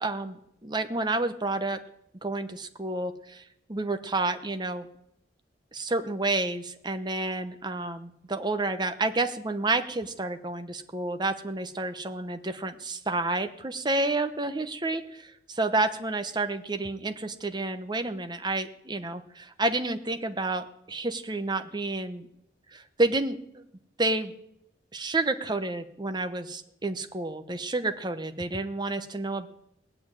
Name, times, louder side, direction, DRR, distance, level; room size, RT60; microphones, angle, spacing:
voice 1, 0.0-1.8 2.2-3.4 3.7-4.9 5.7-22.3 22.7-23.6 24.0-24.3 24.9-29.5, right 2 dB, 25° right, 9 dB, 0.9 m, -30 dB
19.0 x 7.0 x 9.7 m, 0.78 s
head